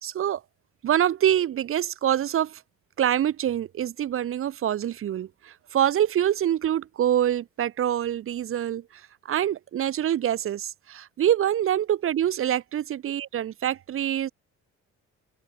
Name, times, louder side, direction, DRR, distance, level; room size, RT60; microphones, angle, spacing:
voice 1, 0.0-0.4 0.8-2.6 3.0-14.3, right 11 dB, 45° right, 0.5 m, -25 dB
open air
cardioid pair, 90°, 30 cm